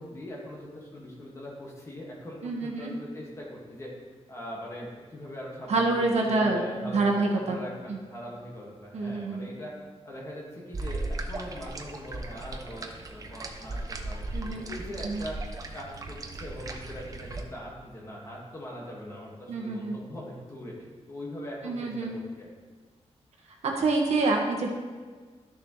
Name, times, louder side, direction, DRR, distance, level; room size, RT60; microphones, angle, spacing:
voice 1, 0.0-3.9 4.3-9.8 10.0-15.4 15.7-20.8 21.1-22.6, equal, 25° left, -3 dB, 1.8 m, -41 dB
voice 2, 2.4-2.9 5.7-7.6 7.9-8.0 8.9-9.5 14.3-14.6 15.0-15.2 19.5-20.0 21.6-22.1 23.8-24.7, right 3 dB, 75° right, 0 dB, 1.4 m, -27 dB
sound 1, 10.7-17.4, right 2 dB, 30° right, 0.7 m, -37 dB
12.5 x 6.6 x 3.2 m, 1.5 s
wide cardioid pair, 180°, 11 cm